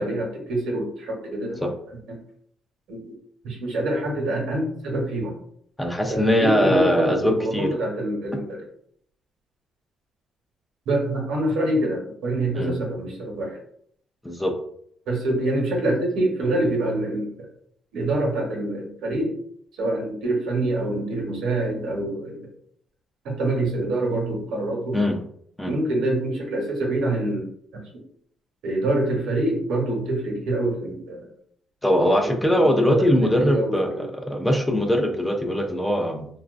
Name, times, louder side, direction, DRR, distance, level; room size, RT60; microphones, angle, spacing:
voice 1, 0.0-1.7 2.1-2.2 2.9-3.0 3.4-5.4 6.0-8.6 10.9-13.6 15.1-17.5 17.9-19.3 19.7-22.4 23.2-25.0 25.6-27.5 28.6-31.3 32.2-34.0, right 1 dB, 80° right, 0 dB, 1.0 m, -25 dB
voice 2, 5.8-7.7 12.5-12.7 14.2-14.5 24.9-25.2 25.6-25.7 31.8-36.3, equal, 5° left, 3 dB, 0.5 m, -21 dB
2.9 x 2.4 x 2.4 m, 0.66 s
cardioid pair, 90°, 0 cm